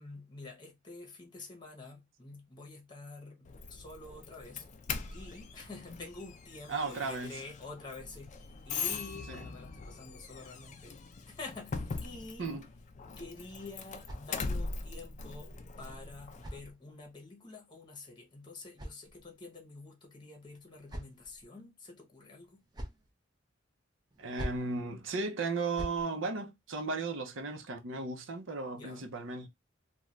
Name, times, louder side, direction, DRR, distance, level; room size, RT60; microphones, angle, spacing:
voice 1, 0.0-4.6 5.1-11.0 11.3-12.5 13.2-22.6 28.7-29.1, left 3 dB, 25° left, 0.9 m, -48 dB
Doorbell, 3.4-16.6, left 4 dB, 40° left, 0.4 m, -41 dB
voice 2, 6.7-7.4 9.3-9.5 12.4-12.7 24.2-29.5, right 3 dB, 80° right, 0.7 m, -35 dB
sound 1, 13.6-14.8 15.8-17.2 18.2-19.6 20.4-21.4 22.4-23.1 24.1-24.7 25.5-26.0, equal, 20° right, 0.6 m, -46 dB
2.5 x 2.2 x 3.1 m
head